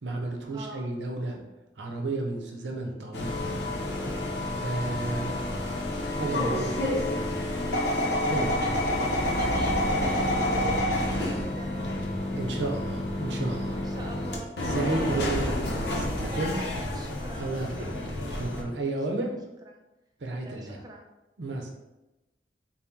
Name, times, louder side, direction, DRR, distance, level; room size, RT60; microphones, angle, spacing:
voice 1, 0.0-1.4 1.8-3.7 4.5-5.3 6.1-6.9 8.3-8.5 12.3-13.8 14.6-16.6 17.3-18.0 18.3-19.4 20.2-20.8 21.4-21.7, right 2 dB, 75° right, 1 dB, 0.7 m, -32 dB
voice 2, 0.5-0.9 4.8-5.8 8.3-12.0 13.4-14.5 16.3-17.5 19.6-19.7 20.4-21.0, right 1 dB, 20° right, 1 dB, 0.5 m, -45 dB
sound 1, 3.1-18.6, left 1 dB, 65° left, 0.6 m, -29 dB
4.2 x 2.1 x 3.6 m, 1.0 s
head